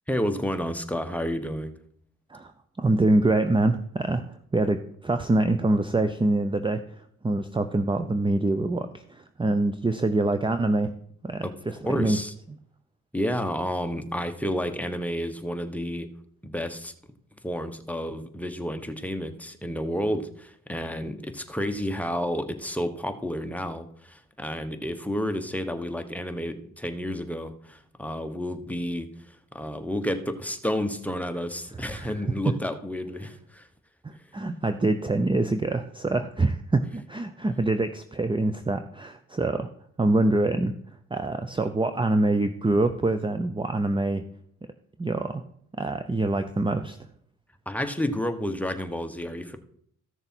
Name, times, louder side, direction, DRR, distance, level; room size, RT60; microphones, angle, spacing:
voice 1, 0.1-1.7 11.4-12.3 13.1-16.1 16.4-16.9 17.4-33.7 34.1-34.2 47.6-49.6, equal, 5° left, 7 dB, 1.2 m, -31 dB
voice 2, 2.8-10.9 11.2-12.2 31.9-32.1 34.0-39.7 40.0-40.7 41.1-44.2 45.0-45.4 45.8-47.0, right 2 dB, 15° right, 9 dB, 0.7 m, -25 dB
14.5 x 6.6 x 4.5 m, 0.66 s
cardioid pair, 75°, 33 cm